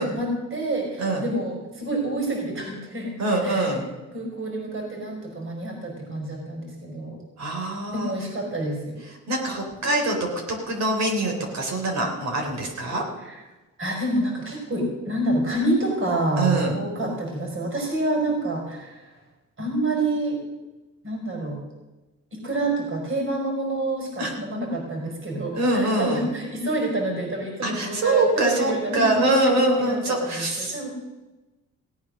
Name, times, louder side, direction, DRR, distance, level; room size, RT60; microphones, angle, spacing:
voice 1, 0.0-3.1 3.4-3.8 4.1-7.2 7.9-9.0 13.3-13.4 13.8-19.1 19.6-20.4 21.0-21.6 22.3-29.5 29.8-30.9, right 1 dB, 45° right, 0 dB, 4.9 m, -28 dB
voice 2, 3.2-3.8 7.4-8.1 9.1-13.0 16.4-16.8 24.2-24.3 25.5-26.3 27.6-30.8, right 2 dB, 65° right, 1 dB, 3.7 m, -24 dB
17.0 x 8.8 x 6.4 m, 1.1 s
cardioid pair, 90°, 30 cm